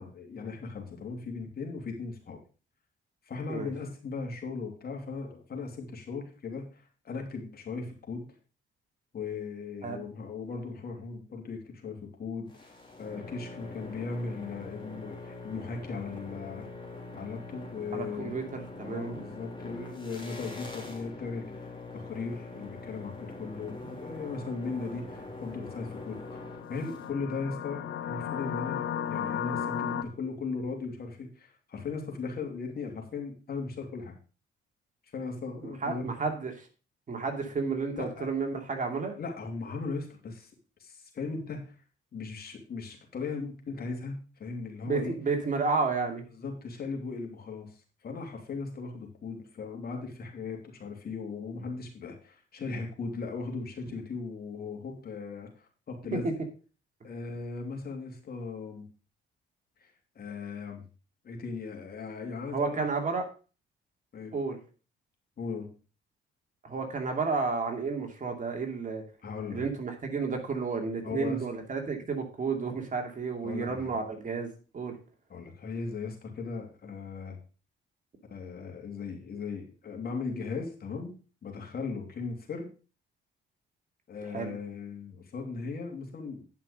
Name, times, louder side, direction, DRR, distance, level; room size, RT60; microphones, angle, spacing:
voice 1, 0.0-2.4 3.2-8.3 9.1-16.7 17.1-18.4 18.8-21.7 21.9-26.4 26.7-34.2 35.1-36.3 37.9-38.3 39.2-40.5 40.8-41.8 42.1-45.1 46.3-56.3 57.0-58.9 59.8-60.8 61.2-62.9 64.1-64.3 65.4-65.7 69.2-69.6 71.0-71.4 73.4-73.9 75.3-77.4 78.3-81.1 81.4-82.7 84.1-86.4, left 4 dB, 50° left, 2 dB, 3.0 m, -38 dB
sound 1, 12.5-27.1, left 2 dB, 25° left, 3.2 m, -43 dB
voice 2, 17.9-19.2 35.6-36.7 37.1-39.1 44.9-46.2 56.1-56.2 62.5-63.2 64.3-64.6 66.6-69.0 69.5-75.0 84.3-84.6, right 4 dB, 40° right, 3 dB, 2.6 m, -31 dB
sound 2, 26.0-30.0, left 8 dB, 70° left, 1.0 m, -34 dB
10.5 x 5.9 x 5.2 m, 0.35 s
cardioid pair, 90°, 20 cm